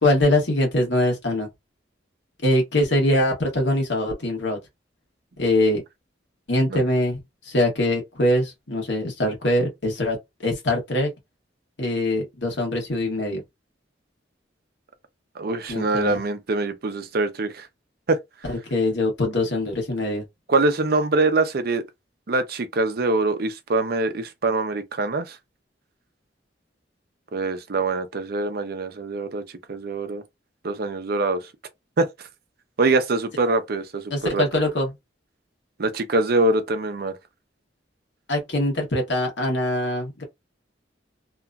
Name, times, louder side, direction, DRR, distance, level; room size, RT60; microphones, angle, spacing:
voice 1, 0.0-1.5 2.4-4.6 5.4-5.8 6.5-11.1 11.8-13.4 15.7-16.2 18.5-20.2 34.1-34.9 38.3-40.2, left 1 dB, 80° left, 1.3 m, -23 dB
voice 2, 15.4-17.7 18.1-18.2 20.5-21.8 22.3-25.4 27.3-30.2 30.6-31.4 32.0-32.1 32.8-34.4 35.8-37.2, right 2 dB, 55° right, 0.6 m, -24 dB
2.9 x 2.5 x 2.3 m
head